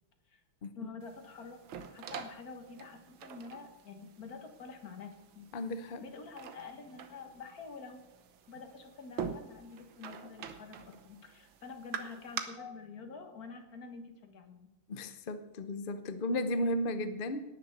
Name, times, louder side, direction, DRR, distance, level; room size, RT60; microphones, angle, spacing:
voice 1, 0.8-1.6 1.9-5.5 6.0-8.0 8.5-14.7, left 4 dB, 50° left, 5 dB, 1.9 m, -48 dB
sound 1, 1.0-12.4, right 7 dB, 75° right, 1.8 m, -46 dB
voice 2, 5.5-6.0 12.6-12.7 14.9-17.4, left 1 dB, 80° left, 10 dB, 0.4 m, -34 dB
18.5 x 6.9 x 6.6 m, 0.93 s
omnidirectional pair, 2.2 m